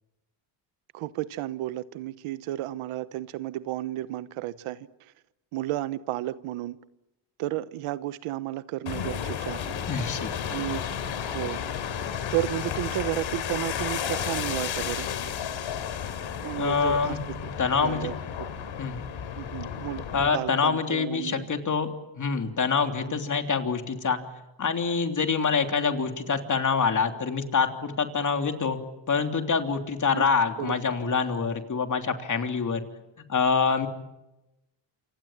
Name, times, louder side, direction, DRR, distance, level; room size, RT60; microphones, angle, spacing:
voice 1, 0.9-5.1 5.5-6.8 7.4-9.7 10.5-10.8 11.3-11.6 12.3-15.1 16.4-17.5 17.8-18.5 19.4-20.0 20.3-21.5 30.1-30.3 30.6-30.7, right 15 dB, 90° right, 1.1 m, -32 dB
sound 1, 8.9-20.3, left 8 dB, 65° left, 3.3 m, -32 dB
voice 2, 9.9-10.3 16.6-17.2 17.6-18.1 18.8-19.1 20.1-21.9 22.2-24.2 24.6-28.8 29.1-32.8 33.3-33.9, left 5 dB, 35° left, 3.3 m, -26 dB
28.5 x 25.5 x 7.5 m
cardioid pair, 100°, 49 cm